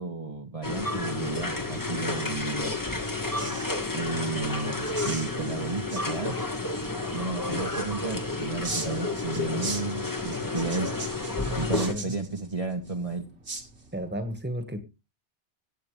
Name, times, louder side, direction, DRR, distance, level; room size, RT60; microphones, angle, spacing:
voice 1, 0.0-2.7 3.9-6.4 7.1-10.9 11.6-13.3, right 3 dB, 30° right, 1 dB, 1.2 m, -33 dB
sound 1, 0.6-11.9, left 2 dB, 20° left, 1.2 m, -31 dB
sound 2, 0.7-14.3, right 3 dB, 70° right, 2.4 m, -42 dB
voice 2, 11.4-12.1 13.9-14.8, equal, 10° right, 8 dB, 1.6 m, -33 dB
17.0 x 8.6 x 3.4 m, 0.27 s
omnidirectional pair, 1.2 m